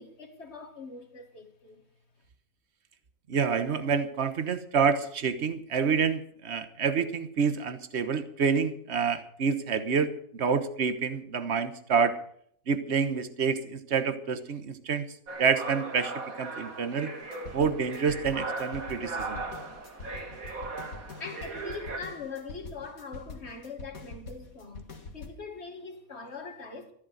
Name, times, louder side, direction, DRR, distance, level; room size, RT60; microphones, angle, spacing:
voice 1, 0.0-1.8 21.2-26.9, left 4 dB, 50° left, 2.2 m, -42 dB
voice 2, 3.3-12.2 12.7-15.1 15.4-17.1 17.5-19.4, right 6 dB, 55° right, 1.4 m, -28 dB
sound 1, 15.3-22.0, right 3 dB, 80° right, 2.4 m, -38 dB
sound 2, 17.2-25.3, left 3 dB, 85° left, 2.3 m, -44 dB
14.0 x 11.5 x 6.5 m
omnidirectional pair, 1.4 m